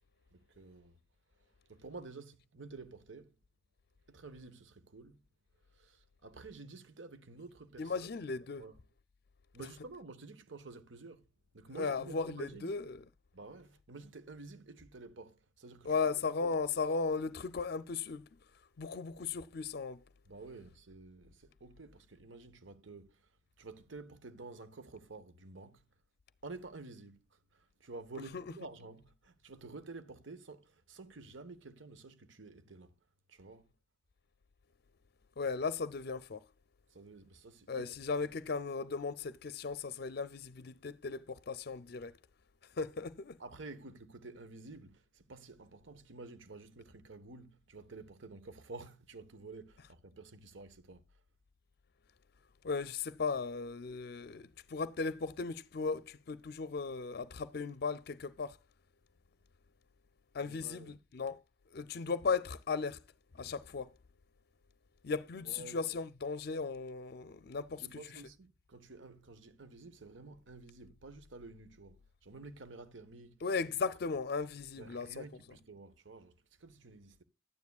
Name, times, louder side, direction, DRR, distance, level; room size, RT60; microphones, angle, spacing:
voice 1, 0.3-1.0 1.7-3.4 4.1-5.2 5.7-8.1 8.6-8.8 9.5-11.3 11.5-12.7 13.3-16.0 16.4-16.5 20.2-25.8 26.4-32.9 33.3-33.7 36.9-37.9 43.4-51.0 60.4-61.0 65.4-65.8 67.7-73.4 73.7-74.1 74.8-77.2, right 3 dB, 85° right, 1.2 m, -51 dB
voice 2, 7.8-8.6 11.7-13.0 15.8-18.3 18.8-20.0 35.4-36.4 37.7-42.1 42.8-43.4 52.6-58.6 60.3-61.4 61.7-63.0 63.3-63.9 65.0-67.9 73.4-75.2, left 4 dB, 55° left, 0.5 m, -36 dB
12.0 x 9.6 x 2.3 m
head